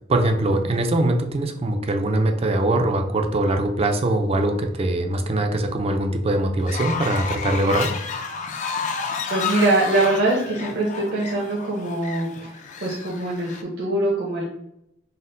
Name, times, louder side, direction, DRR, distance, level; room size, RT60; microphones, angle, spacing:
voice 1, 0.1-7.9, right 1 dB, 35° right, 5 dB, 0.4 m, -22 dB
Fowl, 6.6-13.6, left 5 dB, 40° left, 0.4 m, -31 dB
voice 2, 9.3-14.4, right 2 dB, 60° right, -4 dB, 0.8 m, -23 dB
4.2 x 2.1 x 3.8 m, 0.79 s
head